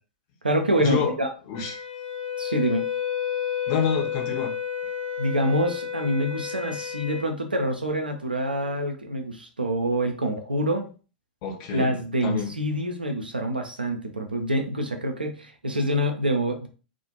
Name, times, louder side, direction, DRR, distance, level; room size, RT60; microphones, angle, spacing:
voice 1, 0.4-1.3 2.4-2.8 5.2-10.9 11.7-16.7, equal, 85° right, 4 dB, 0.6 m, -26 dB
Wind instrument woodwind instrument, 1.5-7.3, left 9 dB, 75° left, 0.7 m, -31 dB
voice 2, 1.5-1.8 3.7-4.5 11.4-12.0 12.2-12.5, left 7 dB, 45° left, 2 dB, 0.8 m, -27 dB
2.4 x 2.2 x 3.0 m, 0.36 s
figure-of-eight pair, 95°, 5 cm